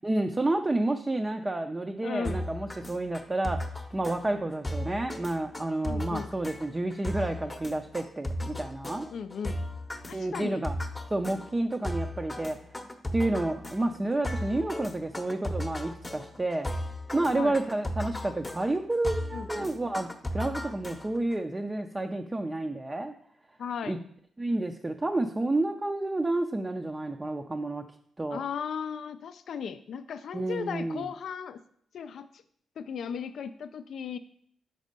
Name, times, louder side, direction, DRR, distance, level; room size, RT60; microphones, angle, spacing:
voice 1, 0.0-9.1 10.1-10.7 11.1-12.6 13.1-16.7 17.1-23.1 23.9-24.0 24.4-27.8 28.2-28.4 30.3-31.0, right 2 dB, 20° right, 4 dB, 0.4 m, -30 dB
voice 2, 2.0-2.5 5.9-6.3 9.1-9.6 10.1-10.6 17.4-17.6 19.3-19.7 23.6-24.0 28.3-31.6 31.9-32.4 32.8-34.2, left 7 dB, 75° left, 11 dB, 0.3 m, -36 dB
sound 1, 2.2-21.3, left 1 dB, 20° left, 0.7 m, -36 dB
5.2 x 4.1 x 5.2 m, 0.64 s
cardioid pair, 75°, 0 cm